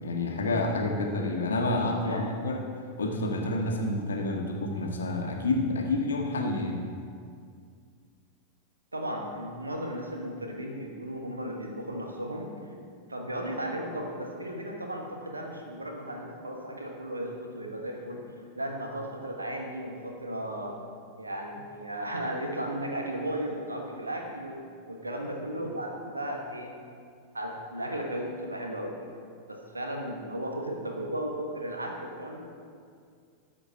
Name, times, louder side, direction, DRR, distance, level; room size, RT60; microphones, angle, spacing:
voice 1, 0.0-2.6 3.0-6.8, left 2 dB, 70° left, 2 dB, 1.1 m, -29 dB
voice 2, 2.0-2.4 8.9-12.5 13.1-18.2 18.6-20.8 21.2-24.6 24.9-26.7 27.3-29.1 29.5-32.5, right 1 dB, 80° right, 1 dB, 1.3 m, -35 dB
13.0 x 5.2 x 4.4 m, 2.2 s
figure-of-eight pair, 90°, 0 cm